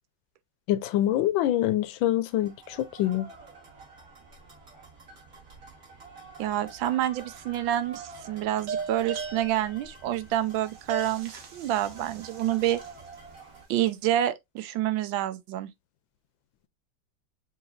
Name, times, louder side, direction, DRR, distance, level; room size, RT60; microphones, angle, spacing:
voice 1, 0.7-3.3, left 13 dB, 80° left, 1.3 m, -25 dB
sound 1, 2.3-13.6, right 3 dB, 45° right, 2.8 m, -49 dB
voice 2, 6.4-12.8 13.7-15.7, right 12 dB, 80° right, 1.4 m, -28 dB
sound 2, 6.7-7.3 8.7-13.1, right 6 dB, 60° right, 1.6 m, -38 dB
6.9 x 2.9 x 2.5 m
omnidirectional pair, 2.1 m